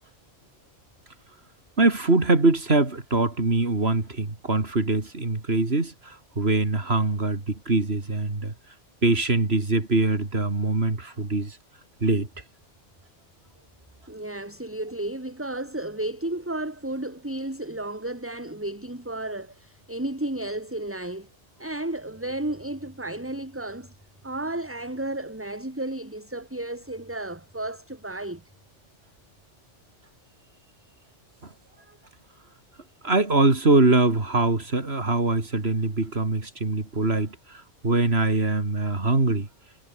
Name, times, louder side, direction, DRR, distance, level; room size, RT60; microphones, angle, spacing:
voice 1, 1.8-8.5 9.0-11.6 12.0-12.3 33.0-39.5, right 3 dB, 55° right, 3.5 m, -23 dB
voice 2, 14.1-21.3 21.6-23.9 24.2-28.4, right 1 dB, 10° right, 2.1 m, -33 dB
omnidirectional pair, 1.3 m